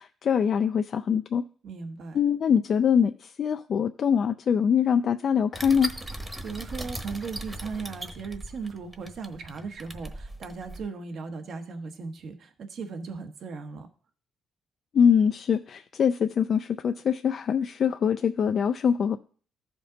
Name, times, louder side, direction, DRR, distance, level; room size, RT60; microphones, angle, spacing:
voice 1, 0.0-1.4 2.1-5.9 14.9-19.2, left 7 dB, 55° left, 7 dB, 0.4 m, -23 dB
voice 2, 1.6-2.2 6.4-13.9, right 5 dB, 65° right, 7 dB, 1.1 m, -37 dB
sound 1, 5.5-10.8, right 1 dB, 20° right, 1.0 m, -38 dB
13.5 x 5.2 x 3.9 m, 0.43 s
cardioid pair, 90°, 0 cm